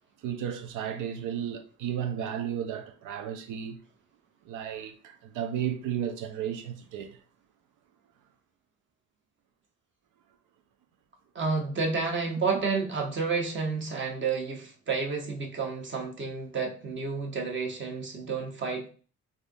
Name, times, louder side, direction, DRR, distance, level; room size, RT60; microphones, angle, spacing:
voice 1, 0.2-3.8 4.4-7.2, right 9 dB, 90° right, 0.6 m, -33 dB
voice 2, 11.3-18.9, right 4 dB, 40° right, 1.0 m, -30 dB
3.5 x 2.6 x 2.6 m
cardioid pair, 90°, 30 cm